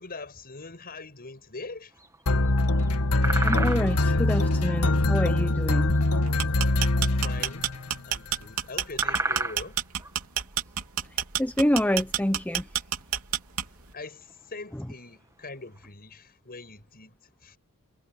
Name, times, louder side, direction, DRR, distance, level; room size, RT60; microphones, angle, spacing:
voice 1, 0.0-2.0 7.0-9.8 13.9-17.6, left 3 dB, 45° left, 7.1 m, -42 dB
sound 1, 2.0-2.5 2.8-2.9 3.2-4.2 4.7-6.1 6.4-6.7 7.0-7.2 7.4-7.6 8.3-8.5 8.8-10.2 10.5-10.9 11.4-12.5 12.9-13.2 13.6-13.7 14.1-14.4 15.2-15.3 15.6-15.8, right 2 dB, 15° right, 2.0 m, -32 dB
sound 2, 2.3-7.9, left 2 dB, 85° left, 1.7 m, -23 dB
voice 2, 3.4-5.9 11.4-12.7, left 1 dB, 5° left, 0.8 m, -27 dB
sound 3, 6.3-13.9, right 10 dB, 70° right, 3.5 m, -29 dB
head